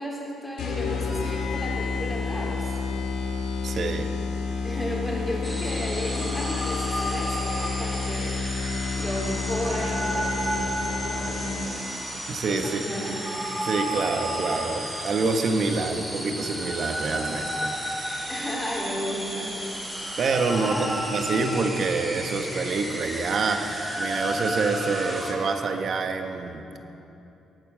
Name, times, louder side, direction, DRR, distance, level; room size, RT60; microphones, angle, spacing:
voice 1, 0.0-2.7 4.6-8.5 8.9-11.8 12.5-13.2 18.3-19.6 20.1-20.2 20.5-21.1, equal, 10° left, -3 dB, 4.4 m, -33 dB
sound 1, 0.6-12.0, left 4 dB, 90° left, 2.3 m, -30 dB
voice 2, 3.6-4.1 12.3-13.1 13.6-17.7 20.2-26.8, right 4 dB, 55° right, 5 dB, 1.4 m, -27 dB
sound 2, 5.4-25.3, equal, 10° right, 4.4 m, -32 dB
22.5 x 9.2 x 6.4 m, 3.0 s
cardioid pair, 90°, 0 cm